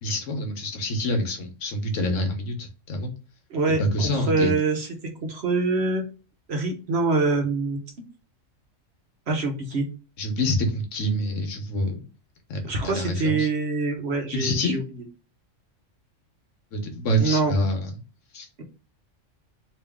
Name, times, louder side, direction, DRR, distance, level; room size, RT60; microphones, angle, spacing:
voice 1, 0.0-3.1 3.8-4.5 10.2-12.0 12.5-13.5 14.3-14.8 16.7-17.9 18.3-18.5, equal, 75° left, 4 dB, 1.3 m, -26 dB
voice 2, 3.5-3.8 4.3-4.9 5.2-6.0 6.5-7.8 9.3-9.9 12.6-14.8 17.2-17.5, right 3 dB, 60° right, 3 dB, 1.1 m, -24 dB
3.2 x 3.0 x 3.5 m, 0.33 s
omnidirectional pair, 1.3 m